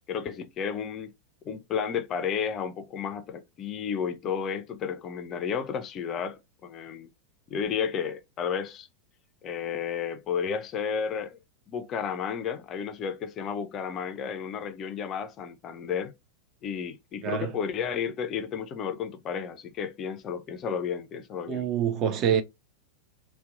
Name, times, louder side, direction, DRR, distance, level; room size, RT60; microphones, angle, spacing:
voice 1, 0.1-1.1 1.4-7.1 7.5-8.9 9.4-11.4 11.7-16.1 16.6-21.7, left 7 dB, 30° left, 0.3 m, -32 dB
voice 2, 21.5-22.4, right 8 dB, 35° right, 0.4 m, -26 dB
2.7 x 2.0 x 2.3 m
figure-of-eight pair, 90°, 0 cm